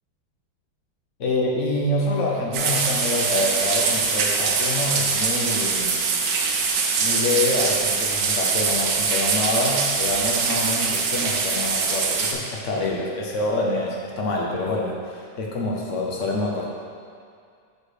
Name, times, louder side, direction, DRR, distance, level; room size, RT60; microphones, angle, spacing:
voice 1, 1.2-6.0 7.0-16.7, left 2 dB, 50° left, -2 dB, 1.0 m, -26 dB
sound 1, 2.5-12.3, right 5 dB, 70° right, 1.3 m, -23 dB
6.5 x 4.8 x 4.9 m, 2.2 s
omnidirectional pair, 2.1 m